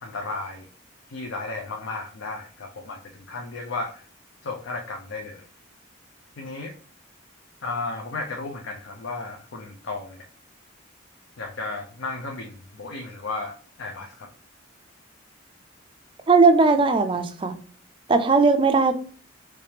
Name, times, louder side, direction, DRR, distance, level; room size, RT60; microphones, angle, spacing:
voice 1, 0.0-0.7 1.1-4.1 4.4-5.5 6.4-6.7 7.6-10.3 11.4-14.3, left 3 dB, 70° left, 2 dB, 0.5 m, -34 dB
voice 2, 16.3-17.6 18.1-19.0, right 4 dB, 25° right, 8 dB, 0.4 m, -18 dB
3.4 x 3.2 x 2.8 m, 0.42 s
head